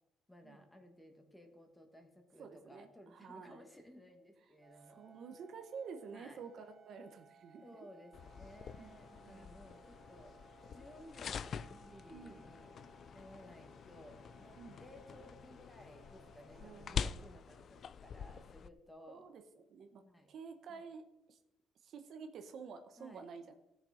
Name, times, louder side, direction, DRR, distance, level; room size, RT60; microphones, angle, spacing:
voice 1, 0.3-5.0 6.1-6.4 7.6-10.3 10.7-12.7 13.1-19.3 20.0-20.3 20.7-20.9 23.0-23.3, equal, 5° left, 5 dB, 1.6 m, -57 dB
voice 2, 2.4-3.6 4.8-7.6 8.8-9.0 9.2-9.5 12.1-12.4 14.6-14.8 16.5-17.1 19.1-20.0 20.3-21.4 21.8-23.5, right 5 dB, 55° right, 7 dB, 1.2 m, -50 dB
sound 1, 4.6-17.9, right 5 dB, 35° right, 1.3 m, -64 dB
sound 2, 8.1-18.7, left 7 dB, 45° left, 0.4 m, -46 dB
17.0 x 6.8 x 5.1 m, 0.87 s
cardioid pair, 150°, 0 cm